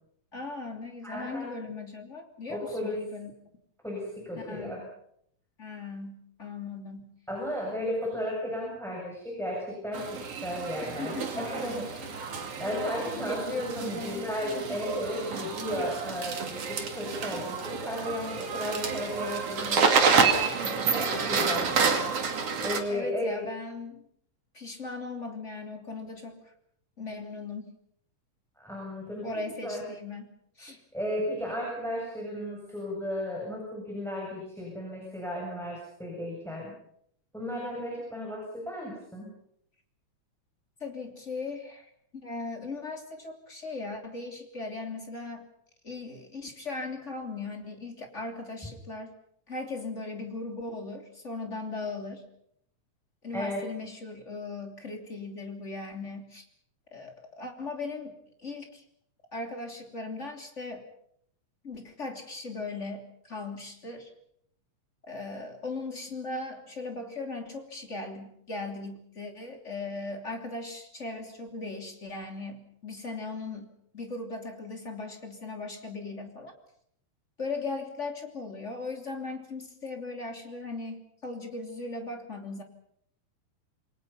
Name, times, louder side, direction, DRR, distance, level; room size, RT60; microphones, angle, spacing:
voice 1, 0.3-3.3 4.4-4.8 5.6-7.1 10.8-11.5 13.0-14.3 22.9-24.0 24.5-26.4 27.0-27.7 29.2-30.3 30.6-30.8 40.8-45.5 45.8-49.1 49.5-52.2 53.2-56.5 56.9-58.8 59.3-60.8 61.6-64.1 65.1-73.7 73.9-76.5 77.4-82.6, left 3 dB, 25° left, 4 dB, 3.1 m, -38 dB
voice 2, 1.0-1.5 2.5-3.0 3.8-4.8 7.3-12.1 12.6-13.4 13.8-23.4 28.6-29.3 29.6-29.8 30.9-36.7 37.3-39.3 53.3-53.6, left 1 dB, ahead, -2 dB, 7.1 m, -34 dB
sound 1, 9.9-22.8, right 5 dB, 50° right, 3.3 m, -29 dB
28.5 x 23.0 x 5.7 m, 0.70 s
omnidirectional pair, 3.6 m